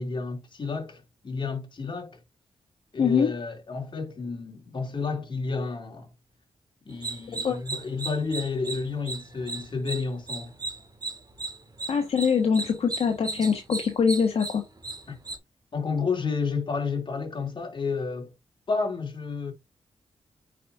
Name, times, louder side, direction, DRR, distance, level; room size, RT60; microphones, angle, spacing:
voice 1, 0.0-2.2 2.9-6.1 6.8-10.5 15.1-15.2 15.7-18.3 18.7-19.5, left 4 dB, 45° left, 2.7 m, -31 dB
voice 2, 3.0-3.3 7.3-7.6 11.9-14.6, left 6 dB, 65° left, 1.4 m, -23 dB
sound 1, 6.9-15.4, right 3 dB, 35° right, 1.9 m, -36 dB
8.4 x 5.0 x 2.6 m
cardioid pair, 60°, 11 cm